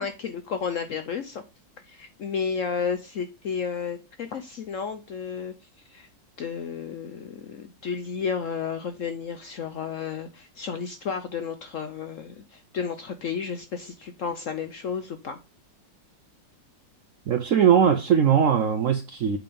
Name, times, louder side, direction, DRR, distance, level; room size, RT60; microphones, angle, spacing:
voice 1, 0.0-1.4 1.8-5.5 5.9-6.1 6.4-15.4, left 6 dB, 65° left, 0.8 m, -32 dB
voice 2, 17.3-19.4, right 8 dB, 70° right, 0.7 m, -20 dB
7.6 x 3.5 x 5.3 m
omnidirectional pair, 2.0 m